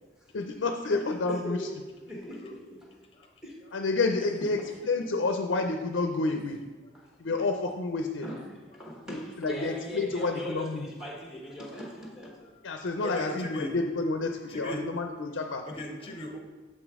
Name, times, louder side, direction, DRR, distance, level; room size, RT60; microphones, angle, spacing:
voice 1, 0.3-1.7 3.7-6.6 7.2-8.3 9.1-10.9 12.6-15.7, left 3 dB, 80° left, 5 dB, 0.5 m, -29 dB
voice 2, 1.3-3.0 3.4-3.7 4.4-4.7 8.2-8.5 8.7-12.5 13.0-13.2, equal, 5° right, -2 dB, 1.1 m, -40 dB
voice 3, 13.0-13.7 14.5-14.8 15.7-16.4, left 1 dB, 30° left, 2 dB, 0.8 m, -37 dB
6.6 x 5.1 x 3.6 m, 1.3 s
head